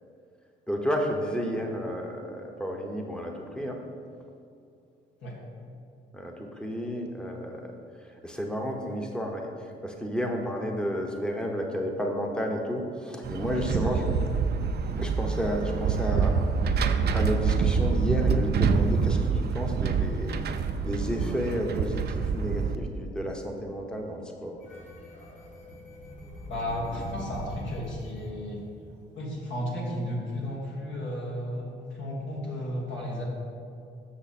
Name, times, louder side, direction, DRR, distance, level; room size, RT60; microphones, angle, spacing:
voice 1, 0.7-3.8 6.1-7.6 8.2-9.5 9.8-14.0 15.0-16.8 17.1-20.4 20.8-24.6, equal, 5° left, 2 dB, 0.9 m, -31 dB
sound 1, 13.2-22.8, right 5 dB, 55° right, 0.5 m, -26 dB
voice 2, 13.6-14.3 26.5-28.6 29.1-33.2, left 1 dB, 70° left, -4 dB, 1.8 m, -34 dB
sound 2, 24.6-29.4, equal, 40° left, 1.5 m, -42 dB
7.3 x 6.0 x 4.2 m, 2.4 s
cardioid pair, 90°, 20 cm